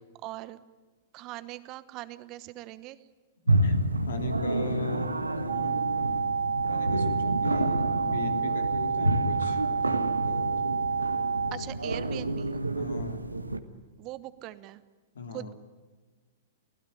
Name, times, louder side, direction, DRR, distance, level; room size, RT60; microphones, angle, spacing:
voice 1, 0.2-0.6 1.1-3.0 11.5-12.5 14.0-14.8 15.3-15.5, right 17 dB, 35° right, 15 dB, 1.1 m, -41 dB
sound 1, 3.5-13.6, right 1 dB, 90° right, 1.4 m, -29 dB
voice 2, 4.1-5.9 6.7-10.7 12.7-13.4 15.1-15.5, left 4 dB, 70° left, 6 dB, 3.0 m, -38 dB
sound 2, 5.5-11.5, right 5 dB, 60° right, 3.4 m, -29 dB
25.5 x 16.5 x 9.9 m, 1.3 s
figure-of-eight pair, 105°, 0 cm